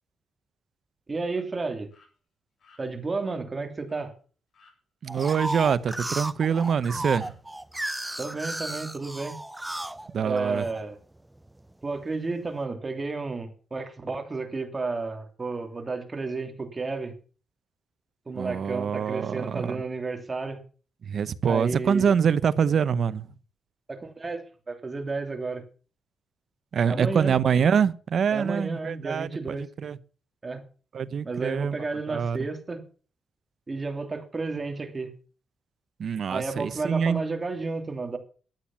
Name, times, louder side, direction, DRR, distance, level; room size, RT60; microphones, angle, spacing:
voice 1, 1.1-1.9 2.8-4.1 8.2-9.4 10.2-11.0 11.8-17.1 18.3-20.6 21.5-22.0 23.9-25.6 26.9-27.3 28.3-29.6 30.4-30.6 31.2-32.8 33.7-35.1 36.3-38.2, right 3 dB, 25° right, 3.0 m, -32 dB
sound 1, 1.3-1.4 1.9-2.1 2.6-2.8 3.2-3.4 3.9-4.1 4.5-4.7 5.2-5.6 5.9-6.1 6.5-6.7 7.1-7.3, left 4 dB, 50° left, 7.4 m, -56 dB
voice 2, 5.0-7.4 10.1-10.6 18.4-19.8 21.0-23.3 26.7-30.0 30.9-31.8 32.1-32.4 36.0-37.2, right 7 dB, 55° right, 0.9 m, -25 dB
sound 2, 5.1-10.8 11.3-12.0, right 1 dB, 10° right, 0.6 m, -34 dB
13.5 x 9.2 x 7.3 m
cardioid pair, 120°, 0 cm